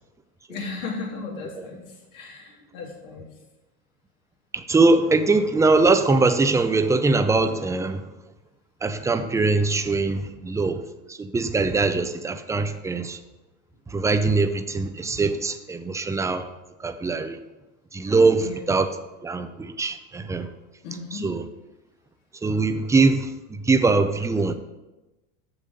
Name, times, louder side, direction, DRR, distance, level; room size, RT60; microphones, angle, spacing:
voice 1, 0.5-1.8 2.1-3.3 18.4-18.6 20.8-21.3, left 4 dB, 75° left, -2 dB, 2.8 m, -35 dB
voice 2, 4.5-8.0 8.8-10.8 11.1-13.2 13.9-16.5 16.8-17.4 17.9-18.9 19.2-20.5 21.1-21.5 22.4-24.5, right 3 dB, 10° right, 9 dB, 0.4 m, -22 dB
7.2 x 6.7 x 5.1 m, 1.0 s
supercardioid pair, 110°, 41 cm